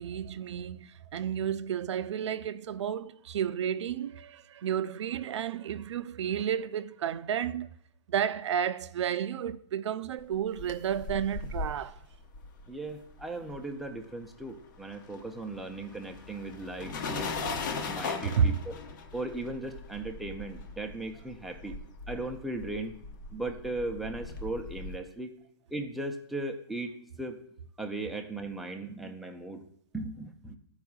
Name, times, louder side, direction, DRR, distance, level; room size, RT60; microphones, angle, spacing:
voice 1, 0.0-7.7 8.1-12.0 18.4-18.6, right 8 dB, 75° right, 0.5 m, -31 dB
sound 1, 10.3-14.0 14.2-25.0, left 4 dB, 40° left, 0.9 m, -39 dB
voice 2, 12.7-17.4 17.9-18.7 19.1-21.7 22.1-22.9 23.3-25.3 25.7-27.4 27.8-29.6 29.9-30.6, right 2 dB, ahead, 0.4 m, -37 dB
13.5 x 4.7 x 2.3 m
hypercardioid pair, 165°, 15 cm